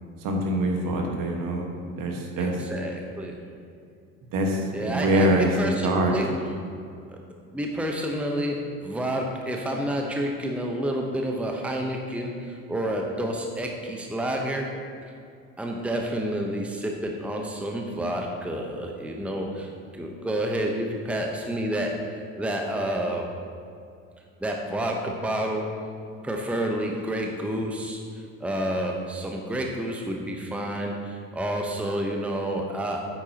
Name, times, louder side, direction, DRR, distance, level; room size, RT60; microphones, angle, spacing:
voice 1, 0.2-1.7 2.0-2.6 4.3-5.5 5.8-6.2, right 1 dB, 55° right, 1 dB, 1.6 m, -24 dB
voice 2, 2.4-3.4 4.7-6.5 7.1-7.2 7.5-14.8 15.6-23.4 24.4-26.0 26.2-28.0 28.4-33.0, right 1 dB, 5° right, 1 dB, 0.9 m, -29 dB
9.2 x 8.6 x 2.9 m, 2.4 s
hypercardioid pair, 65°, 40 cm